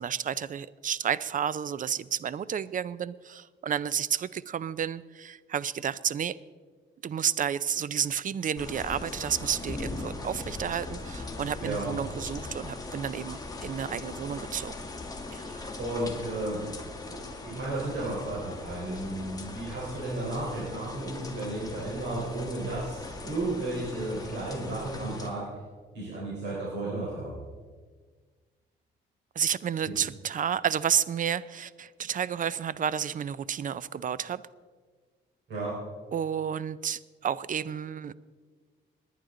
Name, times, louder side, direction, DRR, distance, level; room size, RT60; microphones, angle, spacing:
voice 1, 0.0-6.4 7.0-14.9 15.3-15.6 29.4-34.4 36.1-38.1, right 8 dB, 40° right, 19 dB, 0.5 m, -31 dB
sound 1, 8.6-25.3, left 3 dB, 20° left, 2.0 m, -40 dB
voice 2, 11.6-12.0 15.4-17.2 17.4-25.5 25.9-27.4 29.8-29.9 35.5-35.8, right 2 dB, 65° right, -6 dB, 4.2 m, -33 dB
19.5 x 10.5 x 3.8 m, 1.5 s
cardioid pair, 90°, 20 cm